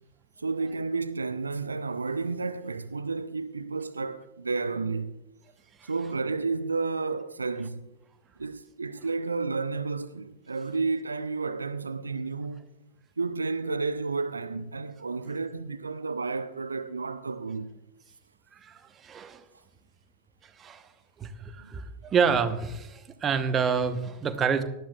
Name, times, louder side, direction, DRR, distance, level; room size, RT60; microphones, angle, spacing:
voice 1, 0.4-5.2 5.9-7.9 8.4-12.6 13.2-17.7 21.6-21.7, right 4 dB, 75° right, 0.5 m, -31 dB
voice 2, 18.5-19.4 20.6-20.9 21.2-24.6, right 6 dB, 25° right, 1.0 m, -28 dB
17.5 x 12.0 x 2.4 m
figure-of-eight pair, 90°, 0 cm